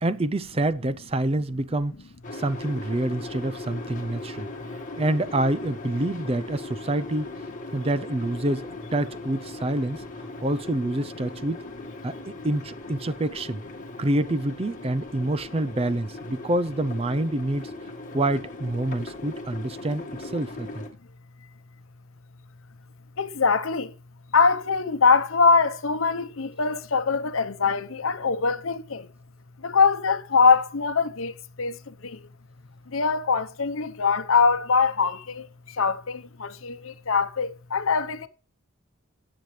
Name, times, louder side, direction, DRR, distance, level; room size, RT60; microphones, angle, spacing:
voice 1, 0.0-1.9 2.3-4.5 5.0-7.3 7.7-10.0 10.4-11.7 12.0-13.6 14.0-17.7 18.1-20.9, right 1 dB, 30° right, 0.5 m, -27 dB
sound 1, 2.2-20.9, left 2 dB, 35° left, 1.7 m, -39 dB
voice 2, 23.2-23.9 24.3-29.1 29.6-32.2 32.9-38.3, left 5 dB, 75° left, 0.9 m, -23 dB
17.0 x 7.8 x 3.2 m
head